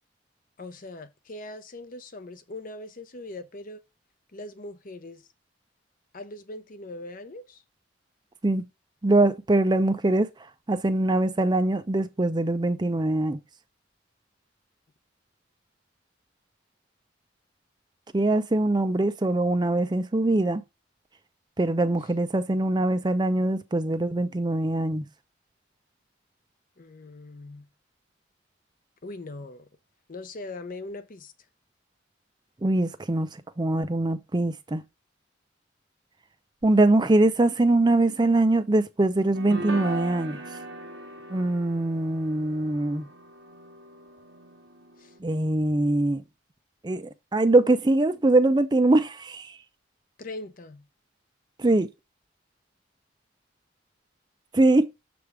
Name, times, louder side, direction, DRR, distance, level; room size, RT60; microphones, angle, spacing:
voice 1, 0.6-3.8 4.3-5.2 6.1-7.6 26.8-27.6 29.0-29.7 30.1-31.3 45.0-45.1 50.2-50.8, left 2 dB, 45° left, 0.7 m, -40 dB
voice 2, 9.0-10.3 10.7-13.4 18.1-20.6 21.6-25.0 32.6-33.3 33.6-34.8 36.6-40.4 41.3-43.1 45.2-46.2 46.8-49.5 51.6-51.9 54.5-54.9, right 2 dB, 20° right, 0.5 m, -22 dB
sound 1, 39.3-45.2, right 2 dB, 85° right, 1.2 m, -39 dB
6.9 x 3.4 x 4.7 m
head